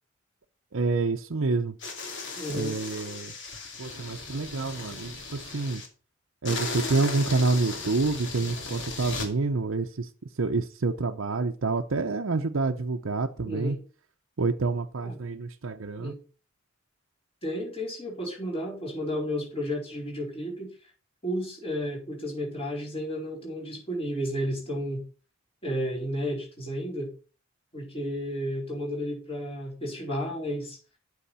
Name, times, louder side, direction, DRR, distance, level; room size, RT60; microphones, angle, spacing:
voice 1, 0.7-1.8 2.5-3.3 3.8-5.8 6.4-10.1 10.4-13.8 14.4-16.1, right 3 dB, 70° right, 0.7 m, -28 dB
sound 1, 1.8-5.9 6.4-9.3, left 3 dB, 65° left, 2.5 m, -36 dB
voice 2, 2.4-2.7 13.4-13.8 15.0-15.2 16.0-16.2 17.4-20.7 21.2-25.0 25.6-27.1 27.7-30.8, equal, 30° left, 4.5 m, -32 dB
8.5 x 6.4 x 5.6 m
head